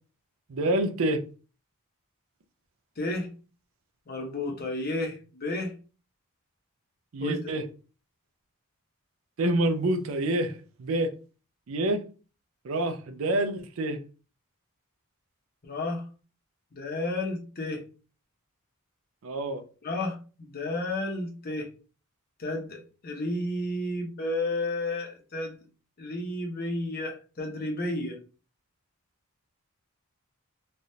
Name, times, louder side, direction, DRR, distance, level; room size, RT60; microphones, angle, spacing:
voice 1, 0.5-1.2 7.1-7.7 9.4-11.1 11.7-12.0 12.6-14.0 19.2-19.6, right 1 dB, 60° right, 0.4 m, -27 dB
voice 2, 3.0-3.3 4.1-5.7 7.2-7.5 15.6-16.1 16.7-17.8 19.8-21.7 22.4-25.6 26.0-28.2, left 2 dB, 40° left, 0.7 m, -32 dB
3.3 x 2.3 x 2.7 m
head